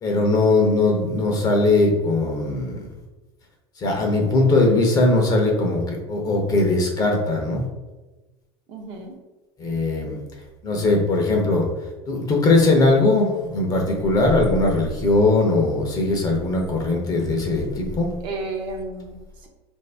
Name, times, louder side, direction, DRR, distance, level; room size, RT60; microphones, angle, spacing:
voice 1, 0.0-2.9 3.8-7.6 9.6-10.2 10.6-11.7 12.1-18.1, left 2 dB, 30° left, 1 dB, 0.8 m, -20 dB
voice 2, 8.7-9.1 18.2-19.5, right 3 dB, 40° right, 1 dB, 0.7 m, -32 dB
5.0 x 2.7 x 3.3 m, 1.1 s
supercardioid pair, 150°, 13 cm